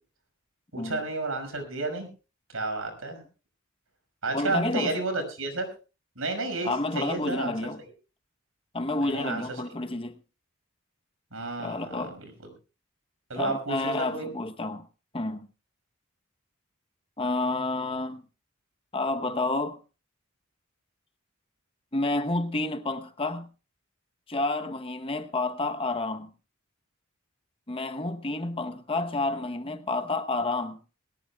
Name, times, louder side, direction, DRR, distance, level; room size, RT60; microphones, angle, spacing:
voice 1, 0.7-2.1 2.5-3.2 4.2-5.7 6.2-7.6 9.0-9.4 11.3-12.5 13.3-14.3, right 2 dB, 80° right, 5.7 m, -31 dB
voice 2, 4.3-5.0 6.6-7.8 8.7-10.2 11.6-12.2 13.4-14.9 15.1-15.5 17.2-18.2 18.9-19.8 21.9-23.5 24.3-26.3 27.7-30.8, left 2 dB, 25° left, 0.9 m, -30 dB
21.5 x 18.0 x 2.3 m
head